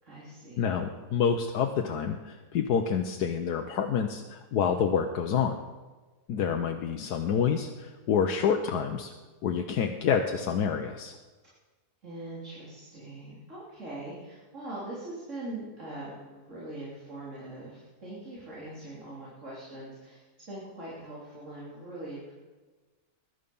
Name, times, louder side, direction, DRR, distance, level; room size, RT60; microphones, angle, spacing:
voice 1, 0.0-0.8 12.0-22.3, right 2 dB, 50° right, -7 dB, 3.8 m, -42 dB
voice 2, 0.6-5.6 6.3-9.1 9.4-11.1, left 7 dB, 85° left, 4 dB, 1.4 m, -28 dB
21.0 x 11.5 x 5.4 m, 1.3 s
omnidirectional pair, 1.6 m